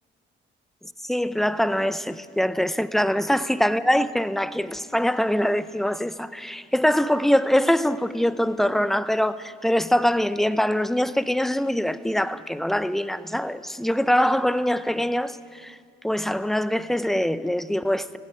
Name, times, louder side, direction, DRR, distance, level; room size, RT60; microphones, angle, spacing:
voice 1, 1.0-15.8 16.0-18.2, equal, ahead, 0.7 m, -23 dB
17.0 x 16.0 x 9.5 m
cardioid pair, 90°, 20 cm